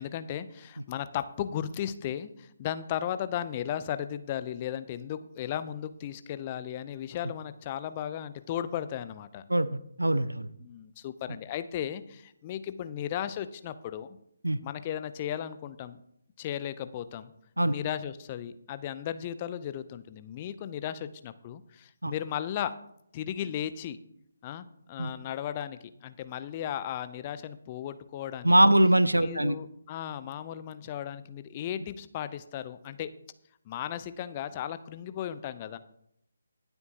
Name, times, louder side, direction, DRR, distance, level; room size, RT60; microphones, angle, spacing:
voice 1, 0.0-9.4 10.6-14.2 14.6-16.0 16.4-17.3 17.6-22.7 23.1-24.0 24.4-28.5 29.1-33.1 33.7-35.8, left 10 dB, 25° left, 12 dB, 0.6 m, -35 dB
voice 2, 9.5-10.5 14.4-14.6 17.6-17.8 22.0-22.1 25.0-25.1 28.4-29.6, right 1 dB, 80° right, 15 dB, 0.7 m, -22 dB
19.5 x 8.0 x 2.9 m, 0.74 s
figure-of-eight pair, 145°, 0 cm